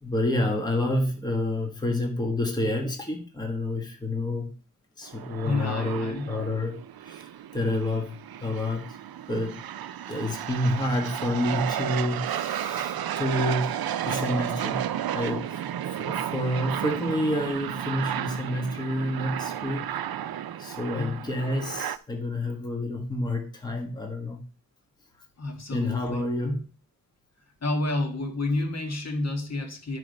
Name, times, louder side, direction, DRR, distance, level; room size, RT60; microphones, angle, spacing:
voice 1, 0.0-4.5 5.0-6.8 7.1-7.3 7.5-8.1 8.4-8.9 9.3-9.6 10.1-14.8 15.1-19.9 20.6-24.4 25.7-26.6, left 1 dB, 10° left, 1.2 m, -29 dB
sound 1, 5.0-22.0, right 10 dB, 85° right, 0.5 m, -33 dB
voice 2, 5.4-6.3 20.9-21.3 25.4-26.6 27.6-30.0, left 2 dB, 45° left, 1.5 m, -30 dB
10.0 x 4.8 x 5.2 m
wide cardioid pair, 160°, 35 cm